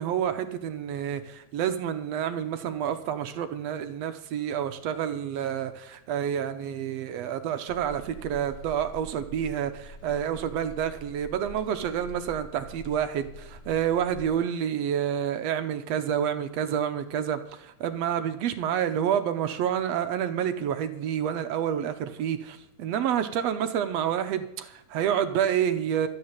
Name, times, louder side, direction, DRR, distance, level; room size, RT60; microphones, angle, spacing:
voice 1, 0.0-26.1, right 9 dB, 70° right, 9 dB, 1.7 m, -28 dB
sound 1, 7.7-14.4, right 1 dB, 50° left, 0.8 m, -45 dB
13.0 x 8.9 x 7.4 m, 0.85 s
omnidirectional pair, 3.5 m